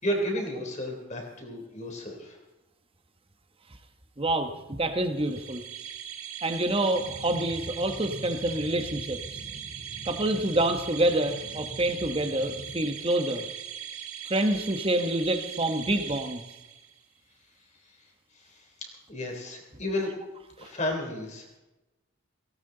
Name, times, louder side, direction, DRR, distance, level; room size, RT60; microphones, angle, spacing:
voice 1, 0.0-2.4 18.3-18.6 19.1-20.1 20.6-21.6, left 1 dB, 35° left, 1 dB, 3.4 m, -32 dB
voice 2, 4.2-5.6 6.4-9.4 10.1-13.4 14.3-16.4 20.6-20.7, right 1 dB, 25° right, 7 dB, 1.1 m, -27 dB
sound 1, 5.1-17.0, right 9 dB, 85° right, 1.7 m, -40 dB
sound 2, 6.9-12.8, equal, 75° left, 3.4 m, -44 dB
18.0 x 17.5 x 3.9 m, 1.0 s
head